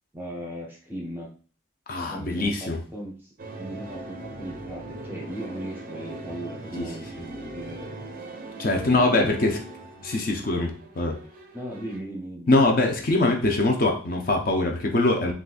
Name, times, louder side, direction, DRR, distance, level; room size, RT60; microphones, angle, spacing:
voice 1, 0.1-1.3 2.1-3.3 3.6-7.9 8.7-9.4 11.5-12.5, right 1 dB, 10° right, -2 dB, 0.7 m, -37 dB
voice 2, 1.9-2.8 6.8-6.9 8.6-9.6 10.0-11.2 12.5-15.3, left 2 dB, 45° left, 1 dB, 0.5 m, -23 dB
sound 1, 3.4-12.0, right 2 dB, 45° right, 0.4 m, -40 dB
3.8 x 2.3 x 2.4 m, 0.41 s
head